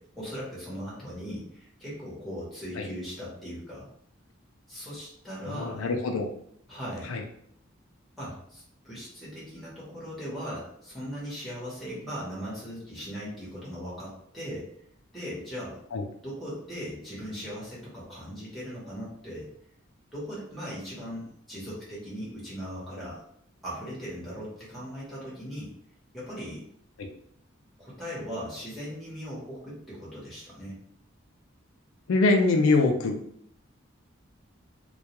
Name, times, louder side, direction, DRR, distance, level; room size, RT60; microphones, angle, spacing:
voice 1, 0.0-3.9 4.7-5.9 6.7-7.2 8.2-14.7 15.1-15.8 16.2-19.5 20.1-23.2 23.6-25.7 26.1-26.6 27.8-30.8, equal, ahead, -8 dB, 0.9 m, -39 dB
voice 2, 5.6-6.3 7.1-7.2 15.9-16.0 32.1-33.1, left 3 dB, 85° left, 4 dB, 0.4 m, -23 dB
2.2 x 2.2 x 2.9 m, 0.67 s
head